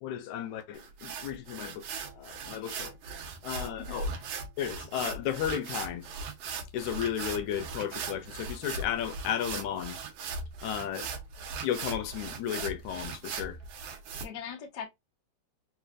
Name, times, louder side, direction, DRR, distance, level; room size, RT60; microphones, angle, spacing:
voice 1, 0.0-2.9 3.4-4.1 4.6-6.1 6.7-10.0 10.6-11.1 11.6-13.6, left 10 dB, 80° left, 2.0 m, -34 dB
sound 1, 0.7-14.2, right 4 dB, 65° right, 1.6 m, -39 dB
voice 2, 3.9-4.3 14.2-14.9, left 7 dB, 60° left, 1.0 m, -42 dB
4.6 x 3.1 x 2.5 m
omnidirectional pair, 3.5 m